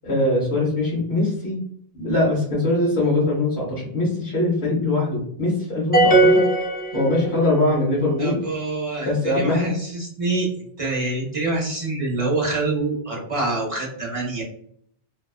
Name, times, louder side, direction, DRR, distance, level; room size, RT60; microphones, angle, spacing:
voice 1, 0.0-1.6 1.9-6.5 6.9-8.4 9.0-9.7, left 2 dB, 75° left, -6 dB, 1.1 m, -22 dB
sound 1, 5.9-7.6, right 2 dB, 10° left, 0.5 m, -18 dB
voice 2, 8.2-10.5 10.8-14.4, right 2 dB, 40° right, -3 dB, 0.7 m, -26 dB
2.6 x 2.2 x 2.3 m, 0.65 s
omnidirectional pair, 1.0 m